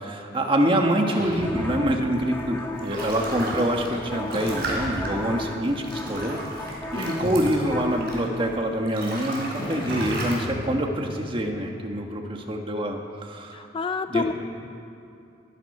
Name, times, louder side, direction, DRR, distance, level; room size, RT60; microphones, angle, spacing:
voice 1, 0.0-13.6 14.1-14.3, right 1 dB, 30° right, 3 dB, 1.5 m, -26 dB
sound 1, 1.1-2.4 4.3-5.4 6.9-8.0 9.6-12.2, equal, 55° left, 5.0 m, -35 dB
sound 2, 1.4-8.6, left 2 dB, 10° left, 1.4 m, -35 dB
sound 3, 2.4-8.4 8.8-10.3, right 2 dB, 60° right, 4.2 m, -36 dB
voice 2, 13.5-14.3, left 4 dB, 30° left, 10 dB, 0.3 m, -27 dB
22.0 x 11.5 x 5.5 m, 2.6 s
head